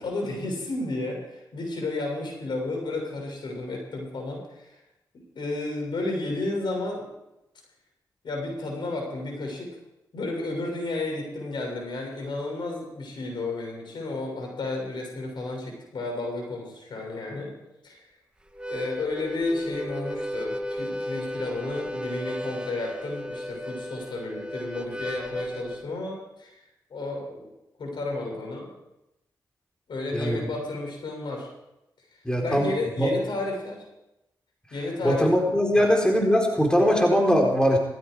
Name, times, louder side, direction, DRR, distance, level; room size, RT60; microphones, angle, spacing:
voice 1, 0.0-4.7 5.3-7.1 8.2-9.7 10.1-17.5 17.8-18.0 18.7-26.6 26.9-27.5 27.8-28.7 29.9-31.5 32.4-33.8 34.7-35.9, left 2 dB, 70° left, 0 dB, 6.9 m, -32 dB
Harmonica, 18.5-25.8, equal, 10° right, 1.9 m, -34 dB
voice 2, 32.2-32.7 33.0-33.1 35.0-37.8, equal, 10° left, 0 dB, 4.2 m, -21 dB
18.0 x 15.5 x 4.9 m, 0.91 s
cardioid pair, 50°, 8 cm